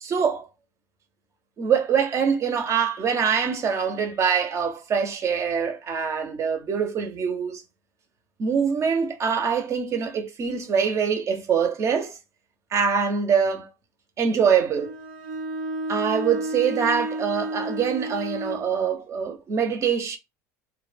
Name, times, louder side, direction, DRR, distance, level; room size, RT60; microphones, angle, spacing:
voice 1, 0.0-0.5 1.6-7.6 8.4-12.2 12.7-13.7 14.2-14.9 15.9-20.2, right 6 dB, 40° right, 0.7 m, -24 dB
Bowed string instrument, 14.8-18.7, right 1 dB, 75° right, 0.6 m, -31 dB
2.8 x 2.1 x 2.4 m
supercardioid pair, 110°, 8 cm